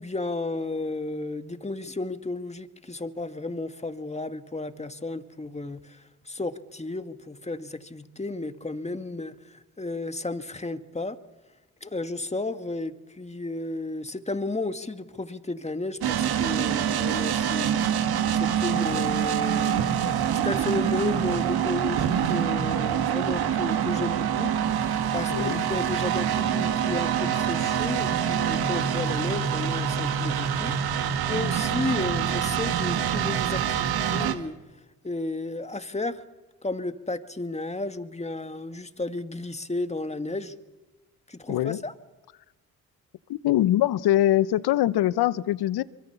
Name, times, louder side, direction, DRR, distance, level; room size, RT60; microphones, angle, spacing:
voice 1, 0.0-6.0 6.3-11.2 11.8-17.8 18.3-19.9 20.4-24.5 25.1-30.7 31.3-34.6 35.0-36.2 36.6-40.5 41.3-41.9, left 2 dB, 15° left, 2.0 m, -33 dB
sound 1, 16.0-34.3, right 9 dB, 65° right, 2.0 m, -25 dB
voice 2, 18.7-19.2 25.3-25.6 41.5-41.8 43.3-45.8, left 13 dB, 65° left, 1.0 m, -23 dB
26.0 x 24.5 x 7.1 m
hypercardioid pair, 45°, 40 cm